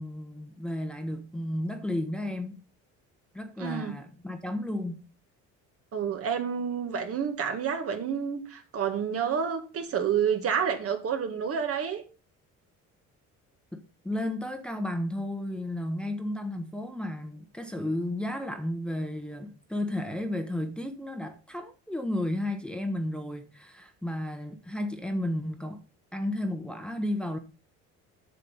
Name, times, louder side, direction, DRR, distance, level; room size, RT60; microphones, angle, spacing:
voice 1, 0.0-2.6 3.3-5.0 13.7-25.8 26.1-27.4, left 1 dB, 5° left, 1.1 m, -33 dB
voice 2, 3.6-4.0 5.9-12.0, right 7 dB, 50° right, 1.8 m, -29 dB
8.3 x 6.2 x 5.5 m
cardioid pair, 120°, 31 cm